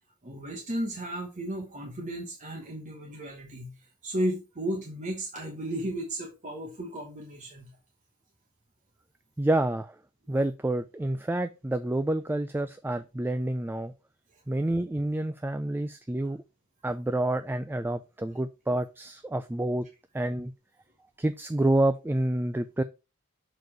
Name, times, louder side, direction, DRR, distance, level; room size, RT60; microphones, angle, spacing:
voice 1, 0.2-3.7 4.0-7.7 16.2-16.3, right 1 dB, 35° right, 1.2 m, -34 dB
voice 2, 9.4-10.0 10.3-13.9 14.5-16.4 16.8-19.9 20.1-20.5 21.2-22.8, right 1 dB, 10° right, 0.3 m, -28 dB
6.8 x 4.1 x 4.6 m
head